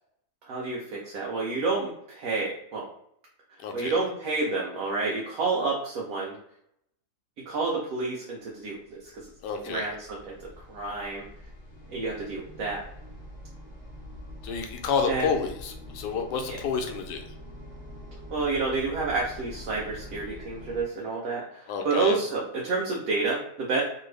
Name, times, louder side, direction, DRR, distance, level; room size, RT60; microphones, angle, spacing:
voice 1, 0.5-2.9 3.7-6.4 7.5-9.1 9.7-11.2 11.9-12.8 15.0-15.3 16.5-16.6 18.3-23.8, right 3 dB, 70° right, -3 dB, 1.1 m, -29 dB
voice 2, 3.6-3.9 9.4-9.8 14.4-17.2 21.7-22.2, left 6 dB, 85° left, 4 dB, 1.2 m, -29 dB
sound 1, 8.9-20.8, left 1 dB, 40° left, 0.7 m, -45 dB
2.9 x 2.6 x 3.1 m, 0.73 s
omnidirectional pair, 1.7 m